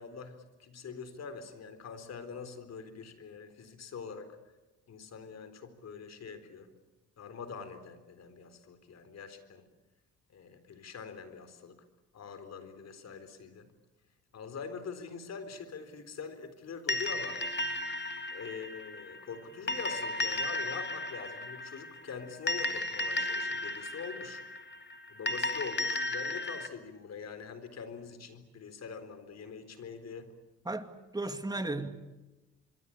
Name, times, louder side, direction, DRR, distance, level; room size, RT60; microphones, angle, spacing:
voice 1, 0.0-4.4 4.9-6.7 7.2-9.6 10.3-11.8 12.1-13.7 14.3-17.4 18.3-24.4 25.1-30.3 31.6-31.7, left 6 dB, 60° left, 4.0 m, -44 dB
sound 1, 16.9-26.7, left 1 dB, 35° left, 2.7 m, -35 dB
voice 2, 30.7-31.9, right 2 dB, 15° right, 2.4 m, -35 dB
26.5 x 23.0 x 8.8 m
cardioid pair, 90°, 30 cm